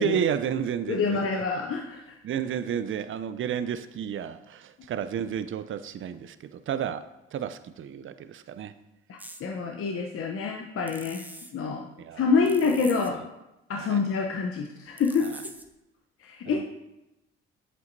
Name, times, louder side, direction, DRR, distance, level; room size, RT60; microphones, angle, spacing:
voice 1, 0.0-1.3 2.2-7.0 7.3-8.7 12.0-12.3 13.1-13.2 13.7-14.0 15.2-15.4 16.5-16.6, right 9 dB, 40° right, 13 dB, 0.5 m, -31 dB
voice 2, 0.9-2.1 9.1-11.2 11.5-11.8 12.1-13.2 13.7-15.3 16.2-16.6, left 5 dB, 45° left, 1 dB, 0.8 m, -27 dB
sound 1, 9.2-9.4 10.9-11.5 12.5-13.1 15.0-15.7, right 1 dB, 5° right, 0.8 m, -44 dB
7.8 x 7.7 x 2.7 m, 0.93 s
hypercardioid pair, 50°, 30 cm